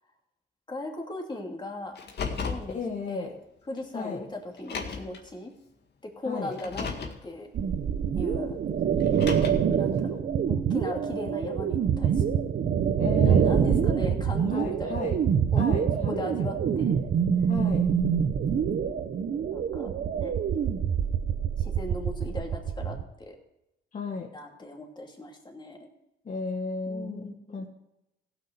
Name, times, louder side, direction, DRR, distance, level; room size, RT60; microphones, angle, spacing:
voice 1, 0.7-2.0 2.3-2.8 3.1-3.4 3.7-5.5 6.0-6.9 7.2-7.5 8.2-8.6 9.8-12.5 13.2-15.1 15.5-15.7 16.1-17.1 18.1-18.5 19.5-19.9 20.2-20.3 21.6-23.4 24.3-25.8 26.9-27.6, left 2 dB, 20° left, 2 dB, 2.6 m, -38 dB
Car, 1.9-2.7 3.8-3.9 4.6-5.2 6.5-7.2 9.0-9.7, left 5 dB, 55° left, 1.9 m, -34 dB
voice 2, 2.7-3.3 3.9-4.2 6.2-6.6 13.0-14.2 14.5-15.1 15.6-16.3 17.5-17.9 23.9-24.3 26.2-27.6, left 4 dB, 40° left, -1 dB, 1.5 m, -34 dB
sound 1, 7.5-23.0, right 7 dB, 55° right, 1.0 m, -26 dB
15.5 x 6.4 x 6.8 m, 0.90 s
cardioid pair, 90°, 20 cm